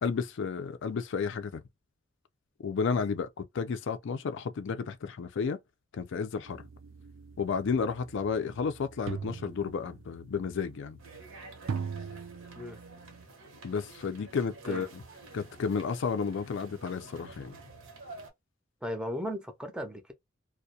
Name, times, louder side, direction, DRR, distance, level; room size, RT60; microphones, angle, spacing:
voice 1, 0.0-1.6 2.6-5.6 5.9-6.6 7.4-11.0 13.6-15.0 15.3-17.6, left 5 dB, 65° left, 0.4 m, -32 dB
sound 1, 6.5-13.2, right 6 dB, 70° right, 0.4 m, -42 dB
sound 2, 11.0-18.3, right 2 dB, 85° right, 0.8 m, -50 dB
voice 2, 18.8-20.1, equal, 5° right, 0.5 m, -36 dB
2.3 x 2.1 x 2.6 m
head